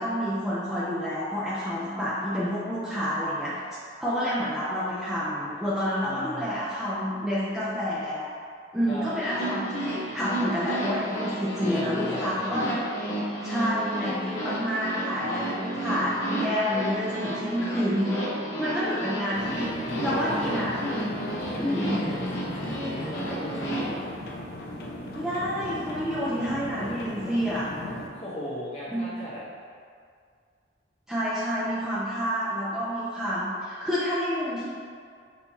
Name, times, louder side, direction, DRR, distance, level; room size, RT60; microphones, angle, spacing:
voice 1, 0.0-3.6 4.0-8.3 8.7-12.8 13.4-18.3 18.6-19.7 20.0-21.1 21.6-22.0 25.1-27.6 28.9-29.1 31.1-34.7, equal, 5° right, -11 dB, 0.5 m, -28 dB
voice 2, 6.0-6.5 8.9-9.0 11.6-12.6 15.2-15.4 15.7-16.0 19.8-20.7 21.4-24.0 26.1-27.3 28.1-29.4, left 1 dB, 30° left, -9 dB, 1.1 m, -38 dB
sound 1, 9.1-23.8, right 1 dB, 75° left, 1.1 m, -32 dB
sound 2, 19.3-28.1, left 1 dB, 55° left, 0.5 m, -37 dB
5.5 x 2.7 x 2.9 m, 2.2 s
head